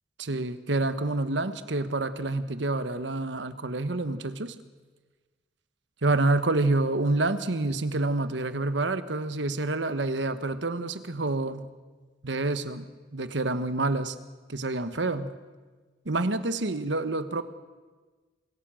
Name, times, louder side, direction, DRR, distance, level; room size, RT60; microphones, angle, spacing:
voice 1, 0.2-4.5 6.0-11.7 12.2-12.8 13.1-14.1 14.5-15.3 16.0-17.4, right 2 dB, 75° right, 12 dB, 1.2 m, -28 dB
24.5 x 16.5 x 7.7 m, 1.3 s
head